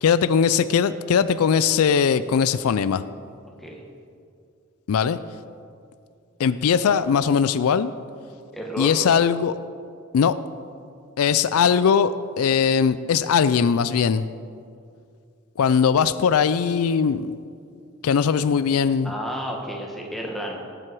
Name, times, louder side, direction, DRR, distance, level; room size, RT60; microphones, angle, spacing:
voice 1, 0.0-3.0 4.9-5.2 6.4-7.9 8.8-9.5 10.1-10.3 11.2-14.3 15.6-17.4 18.0-19.1, left 6 dB, 80° left, 15 dB, 0.4 m, -20 dB
voice 2, 8.5-9.0 19.0-20.7, equal, ahead, -1 dB, 1.5 m, -31 dB
18.0 x 7.8 x 4.6 m, 2.4 s
head